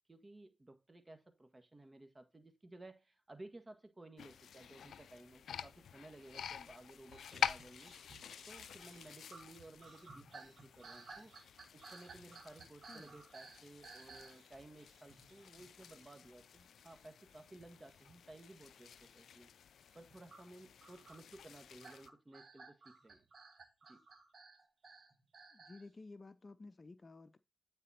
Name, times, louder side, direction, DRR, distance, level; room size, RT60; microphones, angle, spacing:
voice 1, 0.1-7.9 8.4-11.3 11.7-19.5 19.9-23.2 23.9-24.0, right 2 dB, 30° right, 1.6 m, -56 dB
sound 1, 4.2-22.1, left 8 dB, 85° left, 0.3 m, -48 dB
sound 2, 7.1-16.6 16.8-18.5 18.8-19.2 19.9-25.9, right 4 dB, 65° right, 1.6 m, -58 dB
voice 2, 12.6-13.1 25.5-27.4, left 3 dB, 40° left, 0.6 m, -54 dB
9.1 x 4.1 x 4.2 m
cardioid pair, 50°, 0 cm